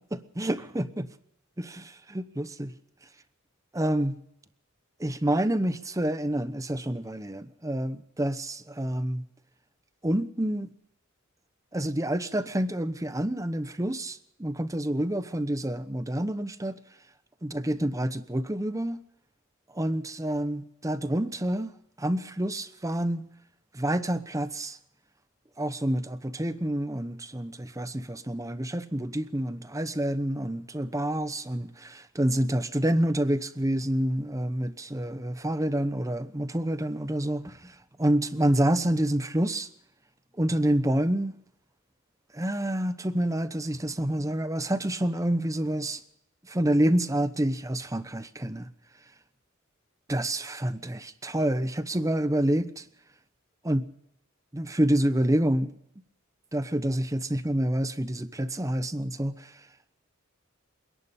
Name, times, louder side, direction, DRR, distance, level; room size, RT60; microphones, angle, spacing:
voice 1, 0.1-1.1 1.6-2.7 3.7-4.1 5.0-9.2 10.0-10.7 11.7-16.8 17.4-19.0 19.7-21.7 22.0-23.2 23.7-24.8 25.6-39.7 40.4-41.3 42.3-46.0 46.5-48.7 50.1-52.8 53.6-53.8 54.5-55.7 56.5-59.5, right 1 dB, 15° right, 0.9 m, -28 dB
27.0 x 11.0 x 8.6 m
head